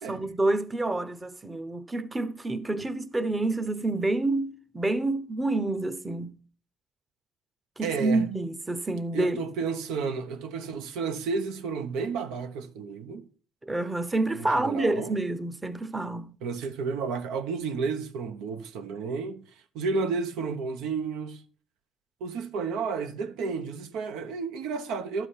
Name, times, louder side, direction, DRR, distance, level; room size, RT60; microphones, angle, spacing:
voice 1, 0.0-6.3 7.8-9.5 13.6-16.3, right 2 dB, 20° right, 0.7 m, -28 dB
voice 2, 7.8-8.2 9.1-13.3 14.4-15.2 16.4-19.4 19.7-21.4 22.2-25.3, right 5 dB, 85° right, 0.9 m, -32 dB
11.5 x 5.0 x 5.6 m
cardioid pair, 90°, 0 cm